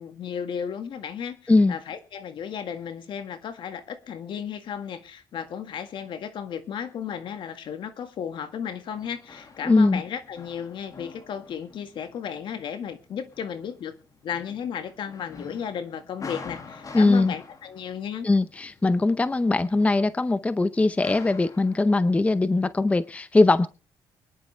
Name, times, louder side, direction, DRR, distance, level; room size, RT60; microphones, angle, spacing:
voice 1, 0.0-13.9 14.2-18.3, left 8 dB, 65° left, 9 dB, 1.8 m, -34 dB
sound 1, 9.0-21.8, left 4 dB, 40° left, 2.1 m, -46 dB
voice 2, 9.7-10.0 16.9-17.3 18.2-23.7, left 2 dB, 15° left, 14 dB, 0.6 m, -21 dB
24.0 x 10.5 x 3.3 m, 0.33 s
cardioid pair, 110°, 9 cm